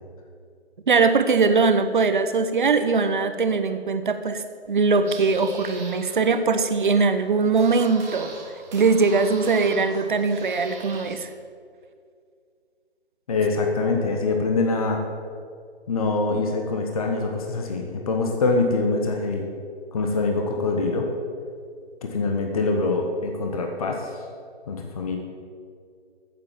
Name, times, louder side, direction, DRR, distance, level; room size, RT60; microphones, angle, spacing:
voice 1, 0.9-4.4 4.7-8.3 8.7-11.3, right 4 dB, 45° right, 9 dB, 1.1 m, -21 dB
sound 1, 4.6-11.1, right 3 dB, 10° right, 1.2 m, -42 dB
voice 2, 13.3-15.0 15.9-19.5 19.9-21.1 22.0-24.1 24.7-25.2, left 3 dB, 35° left, 2 dB, 1.4 m, -24 dB
14.0 x 7.5 x 7.3 m, 2.2 s
figure-of-eight pair, 150°, 33 cm